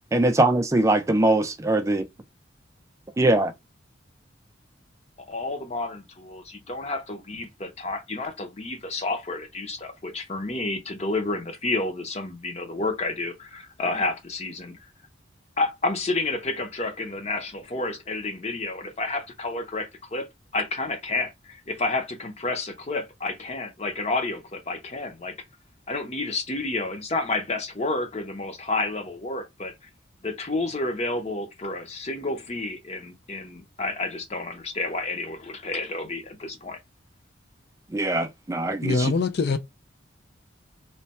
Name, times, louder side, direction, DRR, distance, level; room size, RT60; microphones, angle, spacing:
voice 1, 0.1-2.1 3.2-3.5 37.9-39.1, right 2 dB, 15° right, 0.4 m, -22 dB
voice 2, 5.3-14.8 15.6-20.3 20.5-25.3 25.9-29.7 30.2-36.8, left 2 dB, 35° left, 0.7 m, -30 dB
voice 3, 38.8-39.6, left 4 dB, 55° left, 0.4 m, -23 dB
3.2 x 2.2 x 4.1 m
head